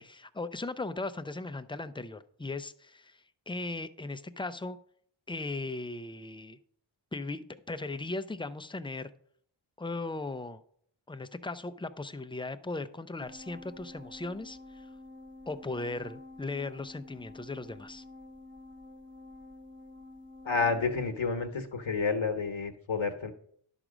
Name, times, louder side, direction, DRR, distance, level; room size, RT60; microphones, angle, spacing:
voice 1, 0.0-4.8 5.3-6.6 7.1-9.1 9.8-10.6 11.1-14.9 15.5-18.0, left 2 dB, 10° left, 11 dB, 0.4 m, -38 dB
sound 1, 13.2-21.1, left 2 dB, 25° right, 1.5 m, -49 dB
voice 2, 20.4-23.3, left 4 dB, 70° left, 7 dB, 1.0 m, -30 dB
11.0 x 6.1 x 5.0 m, 0.64 s
wide cardioid pair, 65°, 50 cm